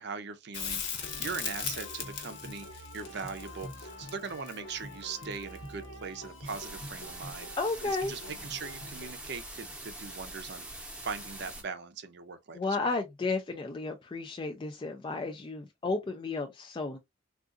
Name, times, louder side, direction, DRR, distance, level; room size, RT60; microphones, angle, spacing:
voice 1, 0.0-7.5 7.8-10.7 11.0-12.9, right 5 dB, 55° right, 0.5 m, -40 dB
Crackle, 0.5-5.7 8.4-8.5, left 7 dB, 60° left, 0.9 m, -38 dB
sound 1, 1.0-9.1, equal, 90° left, 1.0 m, -46 dB
sound 2, 6.4-11.6, right 1 dB, 5° right, 0.8 m, -44 dB
voice 2, 7.6-8.1 12.5-17.0, left 3 dB, 25° left, 0.3 m, -33 dB
3.6 x 2.4 x 2.4 m
head